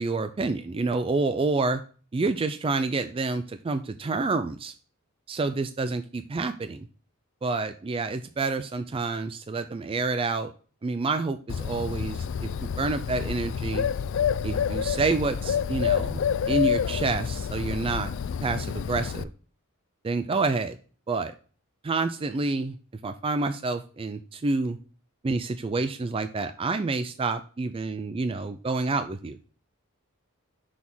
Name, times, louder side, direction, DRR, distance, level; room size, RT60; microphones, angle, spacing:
voice 1, 0.0-1.8 2.1-4.7 5.3-6.9 7.4-10.5 10.8-13.9 14.4-18.1 18.4-19.3 20.0-20.8 21.1-21.3 21.8-22.8 23.0-24.8 25.2-29.4, right 3 dB, 25° right, 9 dB, 0.3 m, -28 dB
Bird, 11.5-19.2, left 7 dB, 60° left, 0.3 m, -28 dB
6.2 x 3.6 x 6.0 m, 0.39 s
head